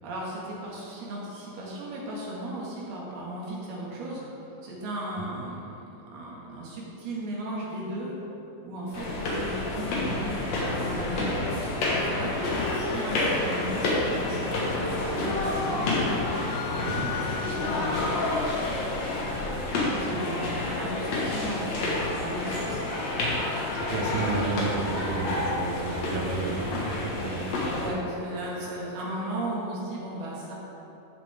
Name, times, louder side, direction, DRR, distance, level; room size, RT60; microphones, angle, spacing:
voice 1, 0.0-5.8 6.1-8.2 8.6-12.3 12.7-16.2 17.3-18.2 20.0-23.1 27.8-30.5, right 1 dB, 85° right, -5 dB, 3.9 m, -36 dB
sound 1, 8.9-27.9, left 2 dB, 55° left, 2.3 m, -29 dB
sound 2, 16.5-18.3, left 8 dB, 85° left, 2.0 m, -37 dB
voice 2, 23.7-27.5, right 3 dB, 65° right, 0 dB, 1.6 m, -32 dB
13.5 x 7.1 x 3.5 m, 3.0 s
omnidirectional pair, 4.4 m